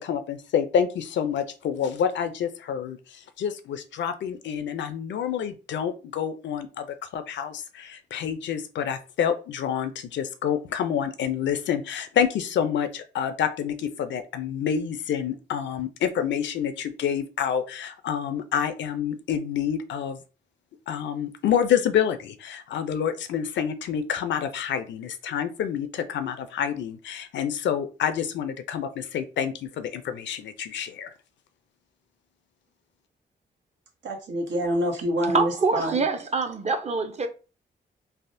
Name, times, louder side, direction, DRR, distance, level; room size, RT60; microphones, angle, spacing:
voice 1, 0.0-6.9 7.1-20.2 20.9-31.1, left 8 dB, 85° left, 0.4 m, -28 dB
voice 2, 34.0-36.1, equal, 90° right, 0.9 m, -26 dB
voice 3, 35.3-37.3, right 4 dB, 35° right, 0.6 m, -25 dB
3.4 x 2.1 x 2.6 m
cardioid pair, 70°, 18 cm